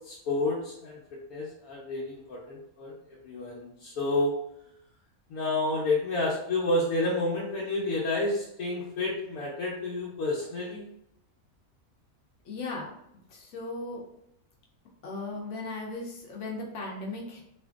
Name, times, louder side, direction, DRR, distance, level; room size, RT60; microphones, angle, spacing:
voice 1, 0.0-1.0 1.3-4.3 5.3-10.8, left 2 dB, 85° left, -5 dB, 1.1 m, -30 dB
voice 2, 12.5-12.9 13.3-14.0 15.0-17.4, left 2 dB, 65° left, -1 dB, 0.9 m, -37 dB
2.8 x 2.5 x 2.3 m, 0.78 s
omnidirectional pair, 1.5 m